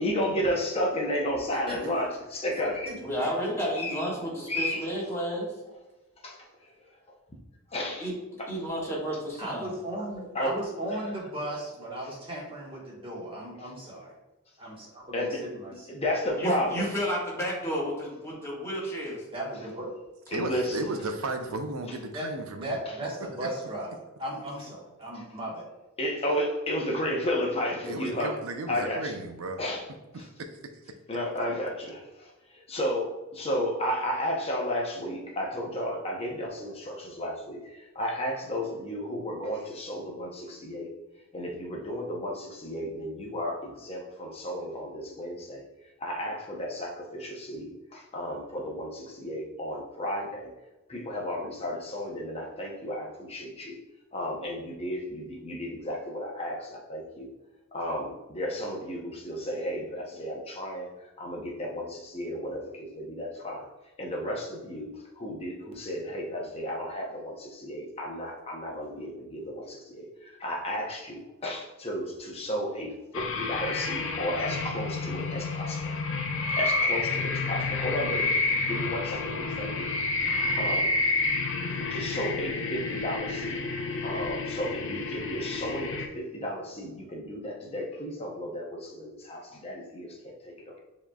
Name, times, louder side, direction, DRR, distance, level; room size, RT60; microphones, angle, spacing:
voice 1, 0.0-3.0 3.8-4.0 4.5-4.9 6.2-6.5 7.7-8.1 8.4-8.5 10.3-10.5 15.1-15.4 15.9-16.9 20.3-20.8 22.9-23.0 25.1-25.2 26.0-28.4 28.7-29.2 29.6-29.8 30.1-30.3 31.1-40.9 41.3-45.6 46.0-50.5 50.9-53.8 54.1-57.3 57.7-60.9 61.2-63.7 64.0-64.9 65.2-75.9 76.4-78.3 78.7-79.9 80.6-81.0 81.9-83.6 84.0-90.8, equal, 30° left, -1 dB, 0.7 m, -33 dB
voice 2, 3.0-5.5 8.0-8.1 8.5-9.7 10.5-10.6 16.4-19.2, equal, 15° left, -6 dB, 1.5 m, -31 dB
voice 3, 9.4-14.1 14.6-15.7 19.3-19.9 22.1-23.9 24.2-25.6, right 1 dB, 25° right, -4 dB, 1.3 m, -36 dB
voice 4, 20.3-22.8 23.4-23.5 27.8-29.6, right 2 dB, 90° right, 6 dB, 0.6 m, -34 dB
sound 1, 73.1-86.1, left 3 dB, 65° left, 0.5 m, -29 dB
7.0 x 3.0 x 2.3 m, 1.0 s
head